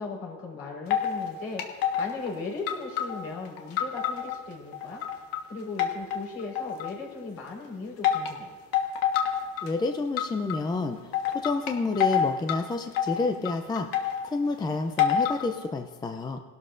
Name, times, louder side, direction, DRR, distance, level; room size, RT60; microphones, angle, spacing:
voice 1, 0.0-5.0 5.5-8.5, left 3 dB, 55° left, -2 dB, 4.6 m, -37 dB
sound 1, 0.9-1.3 1.6-2.3 2.7-4.4 4.7-5.4 5.8-7.0 8.0-8.3 8.7-9.7 10.2-10.6 11.1-12.6 12.9-14.3 15.0-15.4, left 9 dB, 80° left, 1.4 m, -27 dB
voice 2, 9.6-16.4, left 3 dB, 15° left, 5 dB, 0.4 m, -29 dB
19.5 x 12.0 x 2.6 m, 1.4 s
cardioid pair, 135°, 33 cm